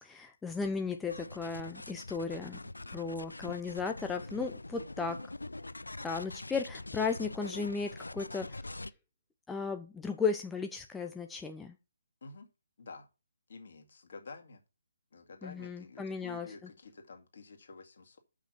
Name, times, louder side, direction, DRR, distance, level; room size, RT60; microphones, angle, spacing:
voice 1, 0.0-2.6 2.9-5.2 6.0-8.8 9.5-11.8 15.4-16.5, left 5 dB, 5° left, 4 dB, 0.6 m, -35 dB
sound 1, 1.1-8.9, left 2 dB, 80° left, 0.4 m, -44 dB
voice 2, 2.8-3.3 12.2-12.5 12.8-13.1 13.5-14.6 15.1-18.2, left 4 dB, 55° left, 4 dB, 2.3 m, -50 dB
6.7 x 5.7 x 6.0 m, 0.28 s
figure-of-eight pair, 145°, 0 cm